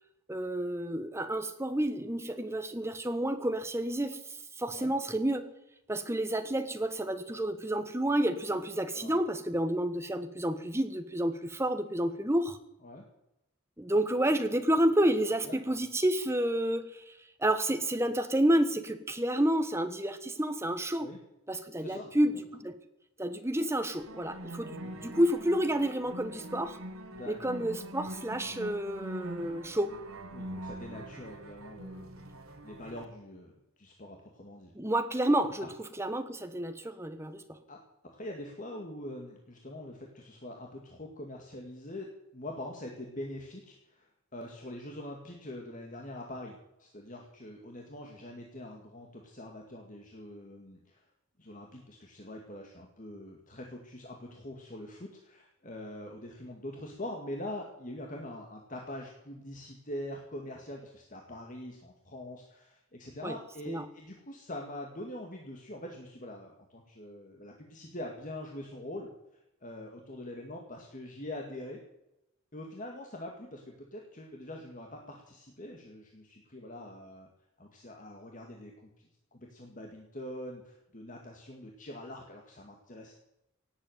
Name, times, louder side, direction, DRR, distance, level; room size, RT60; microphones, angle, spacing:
voice 1, 0.3-4.2 4.6-5.4 5.9-12.6 13.8-17.1 17.4-21.1 21.5-22.8 23.2-26.8 27.3-29.9 34.7-37.6 63.2-63.4 63.7-63.8, right 1 dB, 10° right, 9 dB, 1.2 m, -30 dB
voice 2, 15.4-15.8 21.0-21.2 21.8-22.1 24.8-25.0 27.1-27.6 28.3-28.6 30.3-32.2 32.6-33.5 33.8-34.7 37.7-37.8 38.1-42.1 42.3-51.0 51.4-69.1 69.6-71.8 72.5-77.3 77.6-83.2, left 1 dB, 40° left, 1 dB, 2.1 m, -44 dB
sound 1, 24.0-33.0, right 1 dB, 85° right, 2.0 m, -43 dB
17.5 x 8.3 x 9.3 m, 0.87 s
head